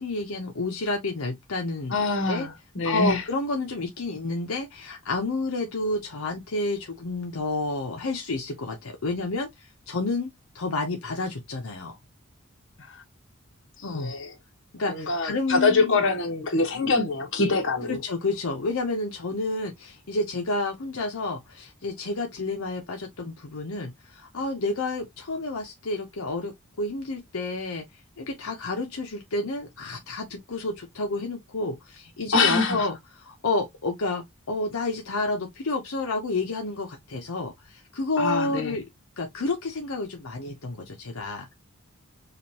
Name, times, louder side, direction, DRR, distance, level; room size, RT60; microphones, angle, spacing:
voice 1, 0.0-1.9 2.3-2.5 2.8-11.9 13.8-14.1 14.7-15.9 17.9-27.8 28.2-38.8 39.2-41.5, left 2 dB, 85° left, 0.9 m, -30 dB
voice 2, 1.9-3.2 12.8-13.0 13.8-14.3 14.9-18.0 32.3-32.9 38.2-38.8, left 3 dB, 60° left, 1.4 m, -25 dB
4.9 x 2.5 x 2.8 m
head